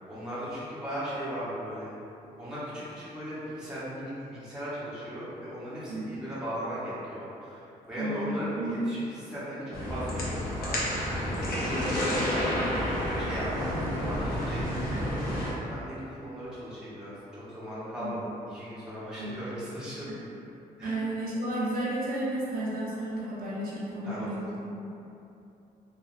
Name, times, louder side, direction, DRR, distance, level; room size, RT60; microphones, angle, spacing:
voice 1, 0.1-1.9 2.4-15.0 15.7-20.1 20.8-21.0 24.0-24.4, equal, 5° right, -11 dB, 0.8 m, -37 dB
voice 2, 8.0-8.8 18.0-18.1 19.2-19.4 20.8-24.8, right 1 dB, 65° right, -8 dB, 0.8 m, -32 dB
sound 1, 9.7-15.5, equal, 75° left, 0.7 m, -30 dB
3.2 x 2.3 x 2.4 m, 2.8 s
cardioid pair, 105°, 16 cm